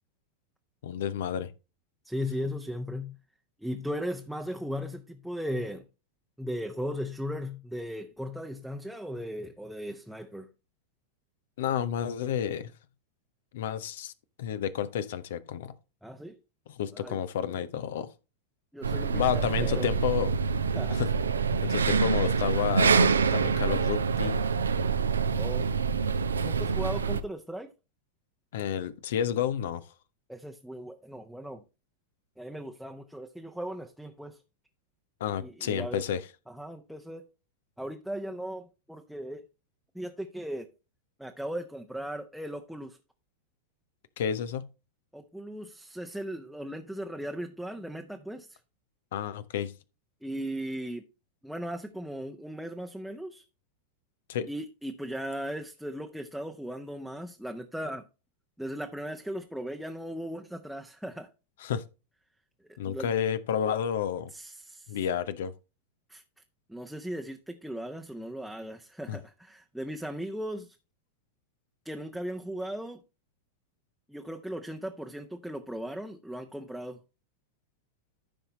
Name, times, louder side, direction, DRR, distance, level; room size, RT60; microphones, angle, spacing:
voice 1, 0.8-1.5 11.6-12.7 13.5-14.1 14.4-15.7 16.7-18.1 19.1-20.3 20.9-21.1 21.6-24.4 28.5-29.8 35.2-36.2 44.2-44.7 49.1-49.7 54.3-54.5 61.6-61.8 62.8-64.3 64.9-65.5 69.1-69.2, left 9 dB, 55° left, 0.8 m, -30 dB
voice 2, 2.0-3.2 3.6-5.9 6.4-10.5 16.0-16.4 16.9-17.2 18.7-19.9 20.7-21.0 23.7-23.8 25.4-25.6 26.4-27.7 30.3-31.6 32.4-34.4 35.4-36.0 36.5-37.2 37.8-39.5 39.9-40.7 41.2-43.0 45.1-48.6 50.2-51.0 51.4-53.4 54.5-58.0 58.6-61.3 62.8-63.1 64.3-65.0 66.1-66.2 66.7-70.8 71.8-73.0 74.1-77.0, equal, ahead, 0.9 m, -37 dB
sound 1, 18.8-27.2, right 5 dB, 70° right, 0.7 m, -26 dB
14.0 x 5.7 x 3.1 m
figure-of-eight pair, 90°, 0 cm